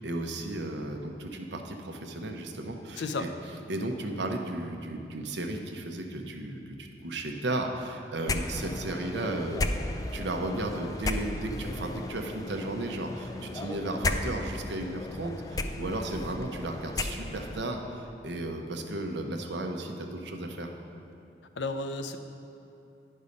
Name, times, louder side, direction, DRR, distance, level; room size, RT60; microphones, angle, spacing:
voice 1, 0.0-3.3 3.7-9.6 10.1-20.7, right 2 dB, 80° right, 3 dB, 0.8 m, -34 dB
voice 2, 3.0-3.3 21.6-22.2, left 3 dB, 85° left, 7 dB, 0.5 m, -32 dB
sound 1, 8.2-17.6, left 2 dB, 20° left, 0.3 m, -34 dB
9.7 x 5.5 x 5.2 m, 2.8 s
head